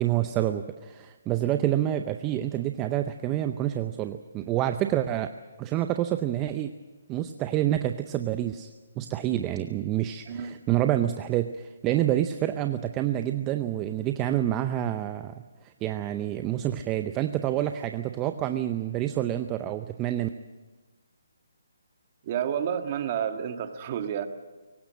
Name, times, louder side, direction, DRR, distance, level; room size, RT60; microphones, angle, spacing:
voice 1, 0.0-5.3 5.6-6.7 7.1-8.7 9.0-15.3 15.6-20.3, right 12 dB, 20° right, 9 dB, 0.6 m, -28 dB
voice 2, 10.2-10.6 22.2-24.3, right 9 dB, 35° right, 7 dB, 1.6 m, -30 dB
23.0 x 18.5 x 7.6 m, 1.3 s
hypercardioid pair, 155°, 0 cm